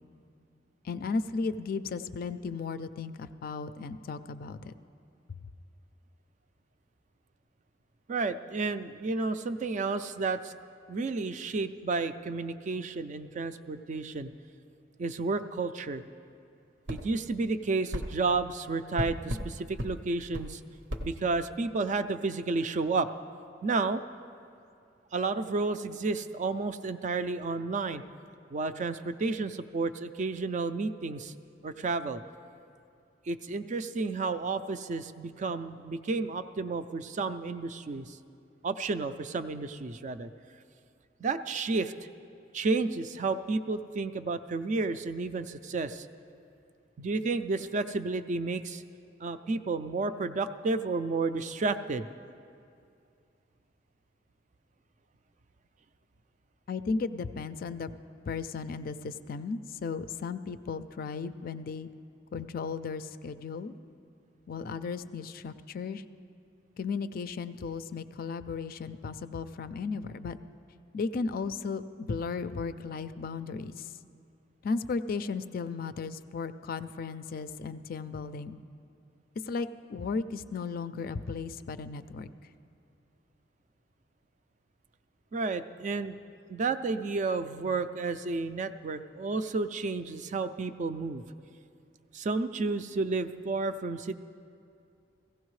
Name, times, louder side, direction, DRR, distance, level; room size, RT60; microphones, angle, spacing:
voice 1, 0.8-4.7 56.7-58.0 58.3-61.9 62.3-63.7 64.5-66.0 66.8-70.4 70.9-73.9 74.6-78.6 79.5-82.3, left 4 dB, 50° left, 12 dB, 0.3 m, -35 dB
voice 2, 8.1-10.5 10.9-14.3 15.0-16.0 16.9-20.6 21.0-23.1 23.6-24.0 25.1-28.0 28.5-31.3 31.6-32.2 33.3-38.2 38.6-40.3 41.2-41.9 42.5-46.1 47.0-48.8 49.2-52.1 85.3-86.2 86.5-91.2 92.1-94.1, right 3 dB, 40° right, 10 dB, 0.3 m, -31 dB
sound 1, 16.9-17.0 17.9-18.1 19.0-19.5 19.8-19.9 20.3-20.5 20.9-21.1, equal, 70° right, 0.8 m, -33 dB
16.0 x 15.5 x 3.2 m, 2.4 s
head